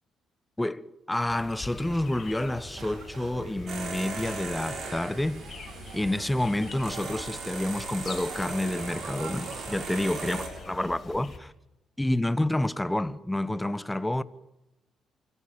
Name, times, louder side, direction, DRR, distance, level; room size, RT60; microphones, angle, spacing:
voice 1, 0.6-5.5 5.9-11.5 12.0-14.2, left 1 dB, 10° left, 1.0 m, -29 dB
sound 1, 1.3-11.4, left 5 dB, 45° left, 6.3 m, -45 dB
sound 2, 1.6-10.6, right 7 dB, 75° right, 2.8 m, -46 dB
sound 3, 3.7-10.5, right 4 dB, 55° right, 7.5 m, -39 dB
27.0 x 17.5 x 8.8 m
cardioid pair, 90°, 0 cm